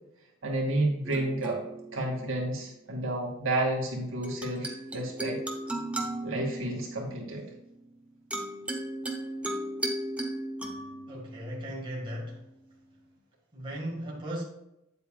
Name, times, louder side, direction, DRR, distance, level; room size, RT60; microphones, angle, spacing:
voice 1, 0.4-1.6 1.9-5.4 6.2-7.4, right 1 dB, 65° right, -1 dB, 2.5 m, -30 dB
sound 1, 1.0-2.8 4.2-12.7, right 1 dB, 5° right, 1.0 m, -37 dB
voice 2, 11.1-12.5 13.5-14.4, equal, 25° right, -4 dB, 1.9 m, -37 dB
9.2 x 8.1 x 2.4 m, 0.87 s
head